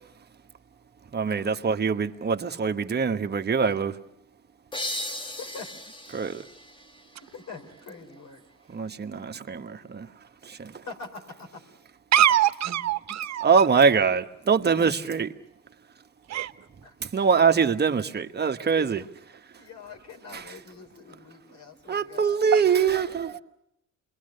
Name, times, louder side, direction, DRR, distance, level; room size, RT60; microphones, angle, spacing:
voice 1, 1.1-4.0 6.1-6.4 8.7-10.1 10.4-10.8 12.7-12.8 13.4-15.3 17.0-19.0 20.3-20.4 21.9-23.4, right 6 dB, 35° right, 1.2 m, -23 dB
sound 1, 4.7-8.1, left 1 dB, 15° left, 1.3 m, -37 dB
voice 2, 5.2-5.8 7.2-8.4 8.8-9.0 10.8-11.6 16.8-17.0 18.8-18.9 19.6-22.4 22.9-23.2, left 4 dB, 65° left, 4.3 m, -43 dB
voice 3, 12.1-13.5 16.3-16.5 22.5-22.6, right 11 dB, 60° right, 1.0 m, -22 dB
27.5 x 21.5 x 6.6 m
cardioid pair, 90°, 30 cm